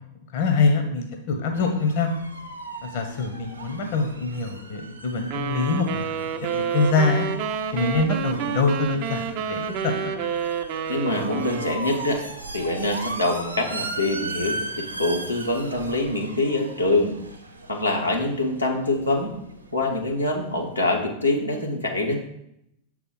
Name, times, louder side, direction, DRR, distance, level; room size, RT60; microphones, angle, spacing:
voice 1, 0.3-2.1 2.8-7.2 7.7-10.2, left 4 dB, 50° left, 4 dB, 0.9 m, -24 dB
sound 1, 1.5-21.0, right 2 dB, 85° right, 0.8 m, -38 dB
sound 2, 5.3-12.3, right 7 dB, 45° right, 0.5 m, -29 dB
voice 2, 10.9-12.2 12.5-17.1 17.7-19.3 19.7-22.2, left 2 dB, 85° left, -1 dB, 1.1 m, -24 dB
6.7 x 4.1 x 4.5 m, 0.78 s
figure-of-eight pair, 90°, 0 cm